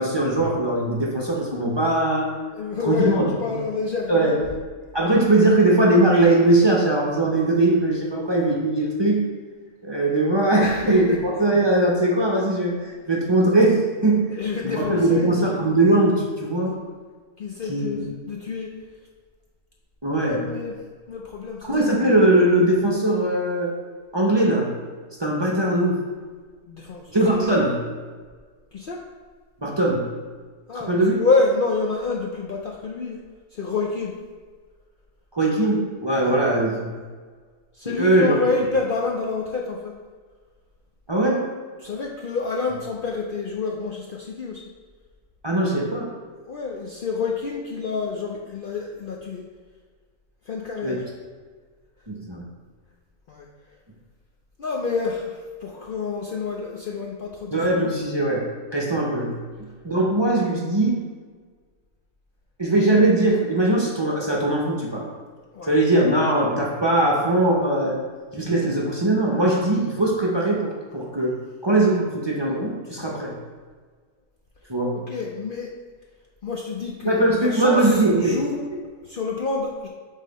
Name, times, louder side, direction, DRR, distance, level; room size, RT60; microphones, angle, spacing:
voice 1, 0.0-2.3 2.8-3.2 4.1-4.4 4.9-9.2 9.8-14.3 14.6-16.8 17.7-18.0 20.0-20.5 21.6-23.7 24.1-24.7 25.2-26.0 27.1-27.8 29.6-30.1 30.7-31.2 35.3-36.9 37.8-38.4 41.1-41.5 45.4-46.1 50.8-50.9 52.1-52.4 57.5-58.5 58.7-59.4 59.8-61.0 62.6-65.1 65.7-68.0 68.3-71.4 71.6-73.3 74.7-75.0 77.0-78.4, right 2 dB, 25° right, -3 dB, 0.8 m, -20 dB
voice 2, 2.5-4.4 10.6-11.2 14.3-15.6 17.4-18.7 20.1-20.7 21.1-21.9 26.7-27.7 28.7-29.0 30.7-33.2 33.6-34.1 36.2-36.4 37.7-39.9 41.8-44.6 46.5-49.4 50.5-51.1 53.3-53.5 54.6-57.9 65.5-65.8 67.8-67.9 74.9-75.7 76.4-78.6 79.1-79.9, left 4 dB, 55° left, -2 dB, 0.6 m, -28 dB
7.2 x 3.7 x 4.0 m, 1.5 s
omnidirectional pair, 1.4 m